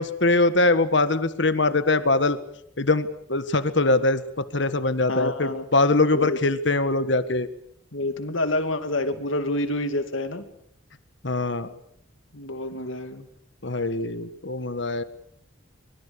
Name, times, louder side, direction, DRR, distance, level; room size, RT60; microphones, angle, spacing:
voice 1, 0.0-2.4 2.8-7.5 11.2-11.7 13.6-15.0, left 2 dB, 60° left, 12 dB, 1.6 m, -22 dB
voice 2, 5.1-5.6 6.1-6.4 7.9-10.4 12.3-13.3, left 1 dB, 75° left, 8 dB, 2.6 m, -28 dB
24.5 x 23.0 x 7.0 m, 0.70 s
head